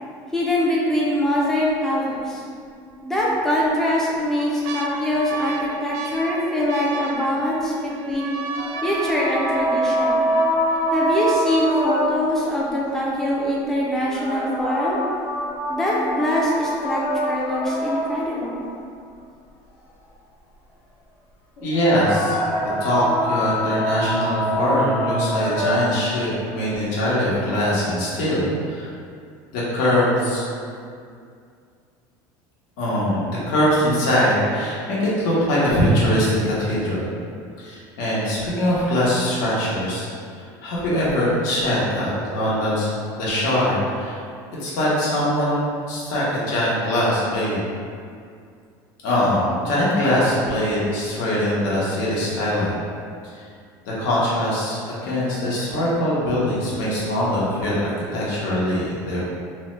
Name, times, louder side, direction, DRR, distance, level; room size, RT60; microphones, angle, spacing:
voice 1, 0.3-2.4 3.0-8.3 8.8-10.3 10.9-15.0 15.7-18.6, left 1 dB, 5° left, -5 dB, 0.4 m, -23 dB
sound 1, 1.2-1.7 2.1-2.2 3.2-3.7 4.1-12.1 12.8-12.9 13.1-13.6 14.0-14.1, right 4 dB, 85° right, 0.4 m, -34 dB
sound 2, 8.5-12.5 14.0-18.5 21.7-26.2, equal, 40° left, 0.9 m, -25 dB
voice 2, 21.6-22.4 22.8-28.9 29.5-30.4 32.8-37.1 37.6-40.1 40.3-44.2 44.6-47.6 49.0-52.7 53.3-53.4 53.8-59.3, equal, 70° left, -7 dB, 0.9 m, -22 dB
3.2 x 2.1 x 3.1 m, 2.3 s
cardioid pair, 175°, 10 cm